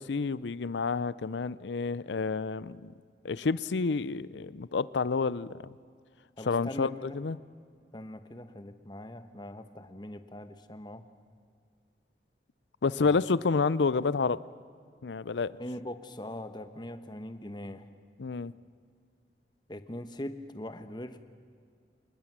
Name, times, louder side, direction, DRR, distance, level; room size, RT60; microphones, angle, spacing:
voice 1, 0.0-2.9 3.2-5.7 6.4-7.4 12.8-14.4 15.0-15.5 18.2-18.5, left 4 dB, 80° left, 0.5 m, -29 dB
voice 2, 6.4-7.2 7.9-11.1 13.0-13.2 15.6-17.9 19.7-21.2, left 1 dB, 25° left, 1.1 m, -41 dB
26.5 x 20.0 x 7.5 m
head